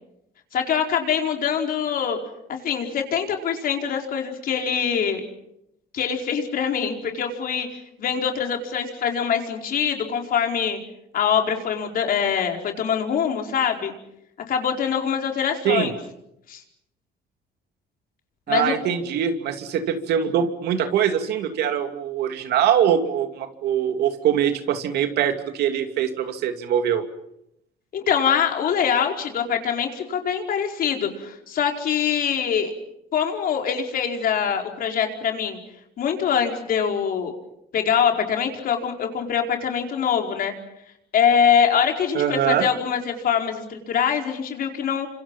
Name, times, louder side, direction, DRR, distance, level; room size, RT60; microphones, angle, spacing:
voice 1, 0.5-2.2 2.5-5.2 5.9-7.7 8.0-10.8 11.1-13.9 14.5-15.9 16.5-16.6 18.5-18.8 27.9-32.7 33.1-35.6 36.0-37.3 37.7-40.5 41.1-45.1, left 7 dB, 60° left, 3 dB, 4.7 m, -23 dB
voice 2, 18.5-27.0 42.1-42.6, right 9 dB, 75° right, 7 dB, 2.7 m, -23 dB
29.5 x 26.0 x 5.6 m, 0.79 s
cardioid pair, 110°, 17 cm